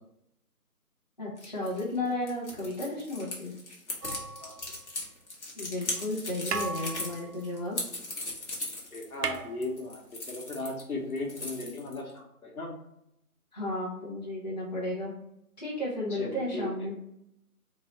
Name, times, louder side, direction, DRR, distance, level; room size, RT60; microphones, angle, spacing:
voice 1, 1.2-3.5 5.5-7.8 13.5-15.1 15.6-17.0, left 1 dB, 30° left, -7 dB, 0.8 m, -33 dB
sound 1, 1.4-10.8 11.1-12.1, left 2 dB, 45° left, 1.1 m, -38 dB
sound 2, 4.0-5.2 6.1-6.2 6.5-8.3 8.6-8.7 8.9-10.3 11.5-11.6, right 5 dB, 85° right, 0.6 m, -37 dB
voice 2, 8.9-12.7 16.1-16.7, left 2 dB, 65° left, 0 dB, 1.2 m, -37 dB
3.9 x 2.0 x 3.8 m, 0.80 s
figure-of-eight pair, 160°, 45 cm